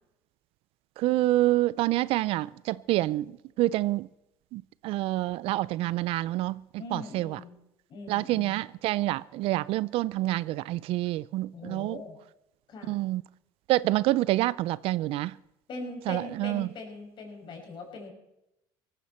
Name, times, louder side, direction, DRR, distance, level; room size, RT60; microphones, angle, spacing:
voice 1, 1.0-4.1 4.5-6.6 6.9-7.4 8.1-12.0 12.9-13.2 13.7-15.4 16.1-16.7, right 17 dB, 65° right, 0.5 m, -27 dB
voice 2, 6.8-7.6 7.9-8.6 11.5-12.2 12.7-12.9 15.7-18.1, left 3 dB, 50° left, 5.5 m, -41 dB
18.0 x 15.0 x 4.4 m
supercardioid pair, 95°, 10 cm